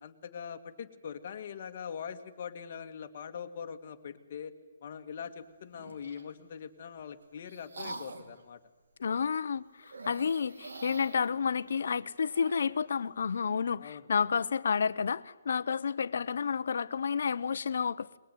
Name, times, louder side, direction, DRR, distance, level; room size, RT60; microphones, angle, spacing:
voice 1, 0.0-4.5 4.8-8.6 13.8-14.1, left 7 dB, 40° left, 2.0 m, -42 dB
sound 1, 5.7-6.3 7.0-8.4 9.8-12.8, right 2 dB, 80° right, 4.4 m, -46 dB
voice 2, 9.0-9.6 10.0-18.2, left 6 dB, 65° left, 1.0 m, -30 dB
21.5 x 21.5 x 9.3 m
hypercardioid pair, 170°, 0 cm